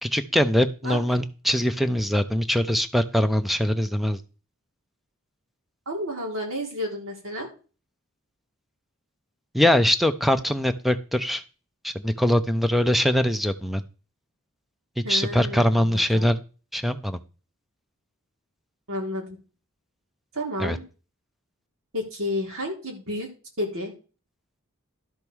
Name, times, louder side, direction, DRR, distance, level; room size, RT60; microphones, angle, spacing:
voice 1, 0.0-4.2 9.5-11.4 11.8-13.8 15.0-16.4 16.7-17.2 20.6-20.8, equal, ahead, 10 dB, 0.7 m, -22 dB
voice 2, 5.9-7.5 15.0-16.3 18.9-19.4 20.3-20.8 21.9-23.3 23.6-23.9, left 1 dB, 75° right, 0 dB, 4.2 m, -31 dB
12.0 x 5.3 x 6.3 m, 0.35 s
head